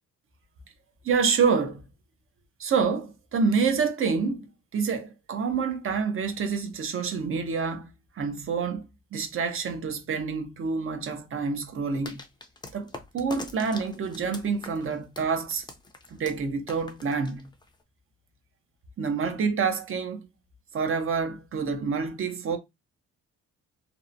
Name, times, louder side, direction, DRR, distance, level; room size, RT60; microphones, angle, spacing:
voice 1, 1.0-1.8 2.6-7.9 8.2-8.8 9.1-12.2 12.7-15.6 16.1-17.5 19.0-20.2 20.7-22.6, right 5 dB, 45° right, 0.7 m, -27 dB
sound 1, 12.0-17.8, left 2 dB, 15° left, 0.5 m, -44 dB
2.8 x 2.1 x 2.5 m
cardioid pair, 90°, 30 cm